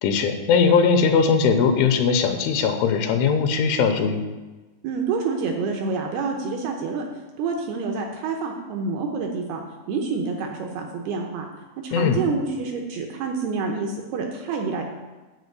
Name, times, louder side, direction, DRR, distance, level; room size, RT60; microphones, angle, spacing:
voice 1, 0.0-4.2 11.9-12.2, left 6 dB, 80° left, 6 dB, 3.2 m, -20 dB
voice 2, 4.8-7.0 7.4-11.5 11.8-14.8, right 4 dB, 80° right, 2 dB, 2.3 m, -27 dB
11.0 x 4.8 x 8.2 m, 1.2 s
omnidirectional pair, 5.5 m